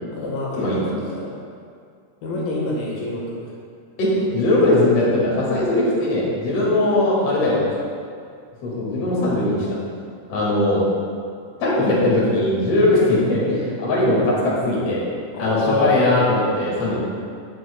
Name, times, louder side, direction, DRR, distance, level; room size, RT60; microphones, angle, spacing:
voice 1, 0.1-1.3 2.2-3.5 4.1-4.2 5.9-6.1 7.2-7.7 15.3-16.1, left 1 dB, 85° left, -4 dB, 3.4 m, -28 dB
voice 2, 4.0-7.6 8.6-9.8 10.3-10.8 11.6-15.0 15.4-17.0, left 1 dB, 45° left, -6 dB, 3.0 m, -19 dB
18.0 x 6.1 x 2.3 m, 2.2 s
omnidirectional pair, 4.2 m